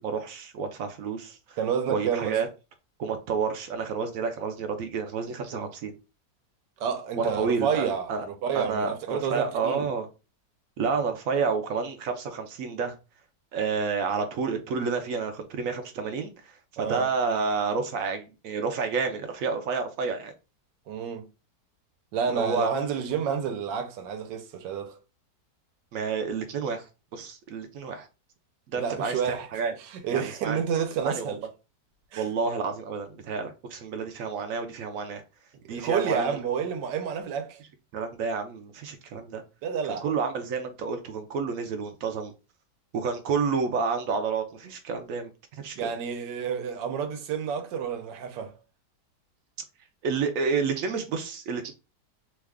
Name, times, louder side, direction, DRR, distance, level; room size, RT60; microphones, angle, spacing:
voice 1, 0.0-1.6 1.9-2.5 3.0-6.0 7.2-8.3 8.5-10.1 10.8-12.9 13.5-20.3 22.3-22.7 25.9-28.1 28.7-29.7 30.1-30.6 31.0-31.3 32.2-35.2 35.7-36.4 37.9-39.4 39.9-42.3 42.9-45.3 45.6-45.9 50.0-51.7, right 5 dB, 70° right, 0.8 m, -30 dB
voice 2, 1.6-2.4 6.8-9.9 16.8-17.1 20.9-21.3 22.1-25.0 28.8-29.5 29.8-31.4 32.1-32.3 35.7-37.6 39.6-40.1 45.8-48.6, right 7 dB, 85° right, 1.3 m, -29 dB
3.0 x 2.3 x 3.4 m
omnidirectional pair, 1.8 m